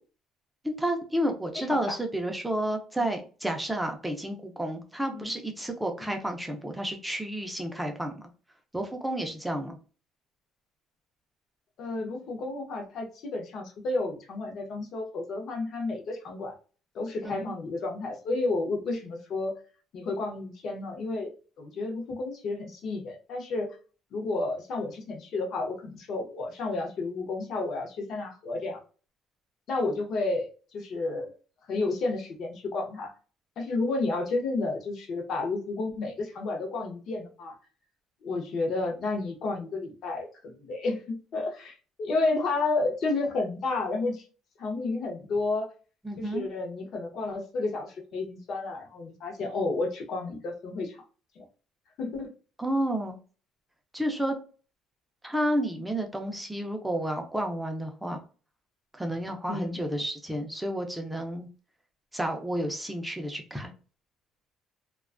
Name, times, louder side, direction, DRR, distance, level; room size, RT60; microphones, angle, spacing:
voice 1, 0.6-8.2 8.7-9.8 17.2-17.3 46.0-46.4 52.6-53.2 53.9-54.3 55.2-58.2 58.9-61.5 62.1-63.7, right 1 dB, 5° right, 3 dB, 0.4 m, -31 dB
voice 2, 1.5-2.0 5.1-5.3 6.0-6.1 11.8-16.6 16.9-19.5 19.9-21.3 21.6-23.7 24.1-28.8 29.7-31.3 31.7-33.1 33.6-37.6 38.2-44.2 44.6-45.7 46.2-51.0 51.4-51.5 52.0-52.3 59.5-59.8, left 3 dB, 50° left, 2 dB, 0.6 m, -31 dB
2.4 x 2.2 x 2.4 m, 0.37 s
cardioid pair, 155°, 0 cm